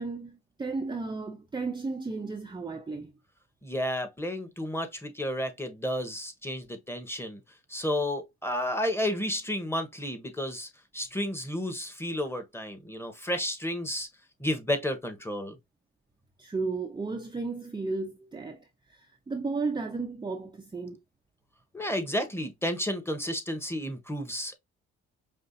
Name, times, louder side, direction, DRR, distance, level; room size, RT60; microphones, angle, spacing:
voice 1, 0.0-3.1 16.4-21.0, right 3 dB, 15° right, 0.5 m, -34 dB
voice 2, 3.6-7.4 7.7-14.1 14.4-15.6 21.7-24.6, left 1 dB, 10° left, 1.1 m, -32 dB
5.4 x 2.5 x 2.6 m
cardioid pair, 90°, 30 cm